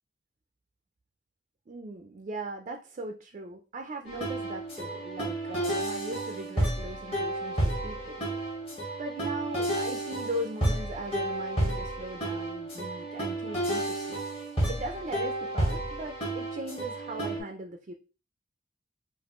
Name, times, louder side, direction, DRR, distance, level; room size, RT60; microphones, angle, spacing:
voice 1, 1.7-8.2 9.0-14.2 14.7-17.9, right 1 dB, 40° right, 4 dB, 0.4 m, -39 dB
sound 1, 4.1-17.4, right 1 dB, 30° left, 1.5 m, -31 dB
5.1 x 2.5 x 3.0 m, 0.34 s
head